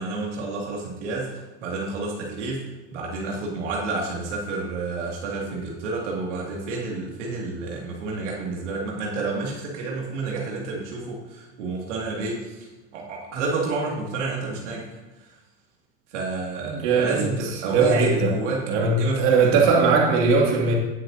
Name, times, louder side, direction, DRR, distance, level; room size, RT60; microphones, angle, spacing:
voice 1, 0.0-1.3 1.6-2.6 2.9-12.7 12.9-15.0 16.1-18.6 19.0-19.7, right 3 dB, 85° right, -2 dB, 2.4 m, -29 dB
voice 2, 16.7-17.3 17.6-18.3 18.6-20.7, right 4 dB, 65° right, -1 dB, 2.5 m, -20 dB
18.5 x 6.5 x 2.8 m, 1.1 s
supercardioid pair, 130°, 35 cm